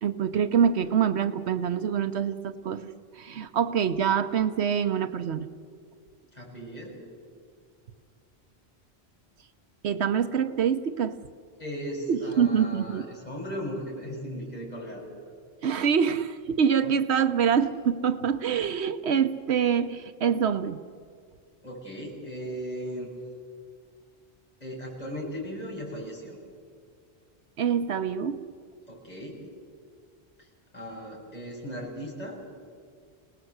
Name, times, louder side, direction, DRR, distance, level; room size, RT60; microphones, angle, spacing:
voice 1, 0.0-2.9 3.1-5.5 9.8-11.2 12.1-13.1 15.6-20.8 27.6-28.4, right 7 dB, 80° right, 10 dB, 1.1 m, -25 dB
voice 2, 6.3-7.0 11.6-15.1 21.6-23.1 24.6-26.4 28.9-29.4 30.4-30.5 30.7-32.4, equal, 40° left, -4 dB, 6.9 m, -37 dB
28.5 x 19.0 x 8.0 m, 2.1 s
omnidirectional pair, 1.1 m